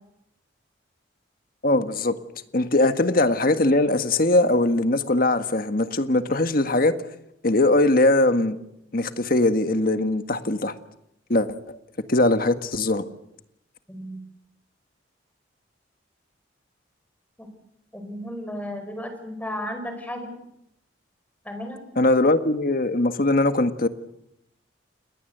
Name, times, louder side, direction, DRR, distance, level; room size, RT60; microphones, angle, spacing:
voice 1, 1.6-2.2 2.5-6.9 7.4-8.6 8.9-10.7 11.3-11.8 12.1-13.0 22.0-23.9, left 2 dB, 50° left, 9 dB, 1.6 m, -21 dB
voice 2, 13.9-14.2 17.4-17.5 17.9-20.3 21.5-21.8, equal, 10° left, 7 dB, 5.2 m, -34 dB
29.5 x 20.5 x 8.0 m, 0.81 s
head